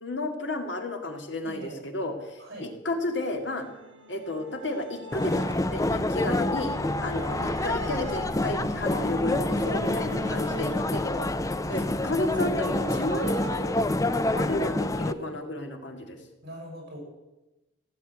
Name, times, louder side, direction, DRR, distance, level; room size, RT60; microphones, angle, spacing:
voice 1, 0.0-3.7 4.1-11.3 11.7-13.9 14.3-16.2, left 1 dB, 65° left, 4 dB, 2.2 m, -32 dB
voice 2, 1.4-1.9 2.4-2.7 7.3-7.5 11.7-12.0 14.6-15.4 16.4-17.0, right 1 dB, 55° right, 0 dB, 7.7 m, -42 dB
sound 1, 2.9-13.6, right 1 dB, 85° right, 1.9 m, -41 dB
sound 2, 5.1-15.1, left 2 dB, 15° left, 0.5 m, -27 dB
16.0 x 8.5 x 9.3 m, 1.1 s
head